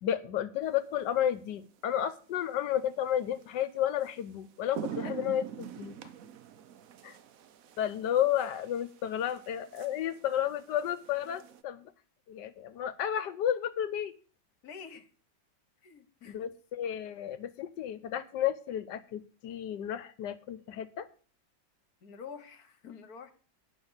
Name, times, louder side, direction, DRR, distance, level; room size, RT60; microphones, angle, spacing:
voice 1, 0.0-6.0 7.0-7.2 7.8-11.9 12.3-14.2 16.3-21.1, left 10 dB, 75° left, 14 dB, 1.3 m, -32 dB
sound 1, 1.0-1.3 3.4-3.5 4.0-4.2 4.5-11.6, right 9 dB, 60° right, 1.0 m, -45 dB
voice 2, 4.9-5.3 14.6-15.1 15.8-16.5 22.0-23.3, left 6 dB, 60° left, 10 dB, 1.5 m, -47 dB
10.0 x 5.6 x 7.9 m, 0.40 s
omnidirectional pair, 1.9 m